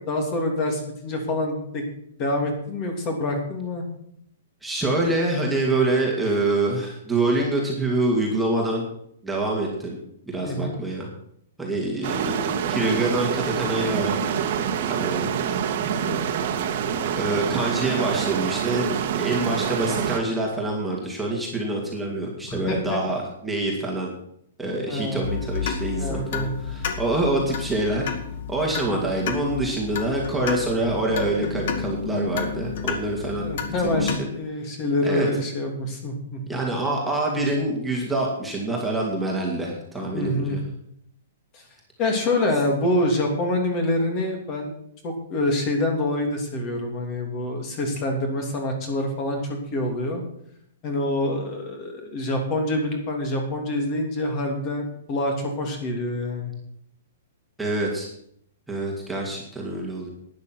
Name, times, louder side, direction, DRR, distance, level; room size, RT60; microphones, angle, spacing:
voice 1, 0.0-1.8 2.2-3.8 10.4-10.8 15.8-16.2 22.5-23.0 24.9-25.3 26.0-26.5 33.3-36.6 40.1-40.6 41.5-41.6 42.0-44.7 45.0-50.2 50.8-56.5, left 1 dB, 25° left, 3 dB, 2.8 m, -26 dB
voice 2, 4.6-8.9 9.2-10.0 10.3-11.1 11.6-14.4 14.9-15.3 17.1-24.1 24.6-28.1 28.5-33.5 33.8-34.3 35.0-35.3 36.5-40.6 57.6-58.1 58.7-60.1, right 2 dB, 5° right, -3 dB, 2.3 m, -26 dB
sound 1, 12.0-20.2, right 8 dB, 45° right, 1.7 m, -26 dB
sound 2, 25.2-34.2, left 6 dB, 55° left, 2.0 m, -31 dB
12.0 x 9.8 x 6.1 m, 0.71 s
hypercardioid pair, 165°, 0 cm